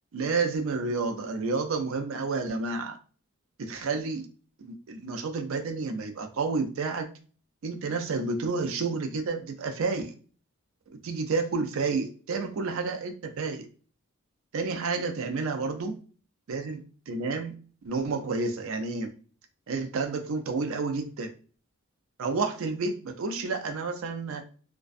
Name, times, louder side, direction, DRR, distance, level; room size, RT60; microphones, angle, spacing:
voice 1, 0.1-3.0 3.6-4.3 4.6-7.1 7.6-10.1 11.0-13.7 14.5-15.9 16.5-17.5 17.8-19.1 19.7-21.3 22.2-24.4, right 4 dB, 70° right, 5 dB, 0.4 m, -30 dB
2.3 x 2.2 x 2.4 m, 0.41 s
head